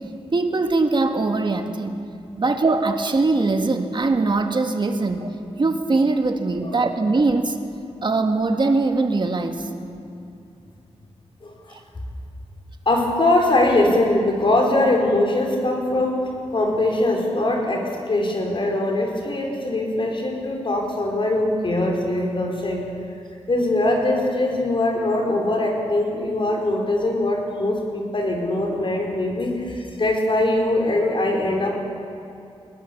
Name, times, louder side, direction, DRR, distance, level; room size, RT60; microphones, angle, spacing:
voice 1, 0.3-2.0 2.4-7.6 8.0-9.7 11.7-11.8, right 3 dB, 45° right, 5 dB, 1.7 m, -21 dB
voice 2, 12.8-16.2 16.5-22.8 23.5-31.7, left 1 dB, 50° left, 1 dB, 4.9 m, -22 dB
22.0 x 20.0 x 7.2 m, 2.6 s
cardioid pair, 65°, 11 cm